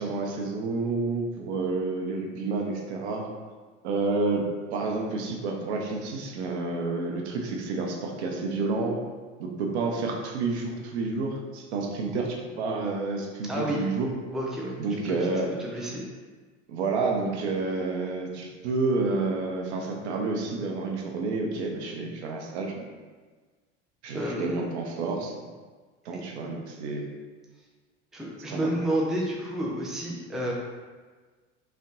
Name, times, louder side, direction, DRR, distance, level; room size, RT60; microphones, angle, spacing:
voice 1, 0.0-3.3 3.8-9.0 9.4-14.1 14.8-15.5 16.7-22.9 24.0-25.5 26.0-27.1 28.5-28.8, right 3 dB, 60° right, 1 dB, 0.7 m, -29 dB
voice 2, 13.5-13.8 14.3-14.8 15.1-16.0 24.1-24.5 26.1-26.3 28.1-30.5, right 1 dB, ahead, -3 dB, 0.5 m, -30 dB
5.1 x 2.2 x 2.5 m, 1.4 s
figure-of-eight pair, 70°, 37 cm